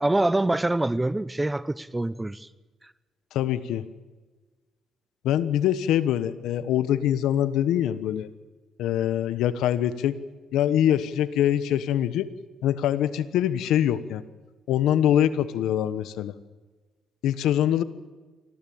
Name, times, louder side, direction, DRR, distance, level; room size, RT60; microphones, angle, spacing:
voice 1, 0.0-2.5, right 2 dB, 15° right, 0.8 m, -25 dB
voice 2, 3.3-3.8 5.2-8.3 8.8-10.1 10.5-12.3 12.6-14.2 14.7-16.3 17.2-17.8, left 11 dB, 85° left, 1.1 m, -24 dB
25.0 x 16.0 x 8.7 m
cardioid pair, 90°, 0 cm